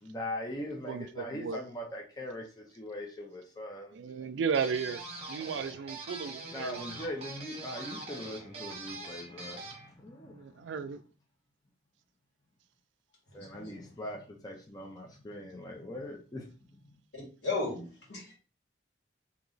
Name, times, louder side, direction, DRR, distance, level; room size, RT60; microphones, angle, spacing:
voice 1, 0.0-4.3 6.5-11.0 13.3-17.0, left 1 dB, 20° left, 0.5 m, -41 dB
voice 2, 0.9-1.6 3.9-5.0 5.3-6.9 10.3-11.0, right 6 dB, 80° right, 0.3 m, -34 dB
sound 1, 4.5-9.9, right 2 dB, 35° right, 1.0 m, -43 dB
voice 3, 13.3-13.8 17.1-18.3, left 3 dB, 70° left, 1.8 m, -36 dB
2.9 x 2.9 x 3.9 m
head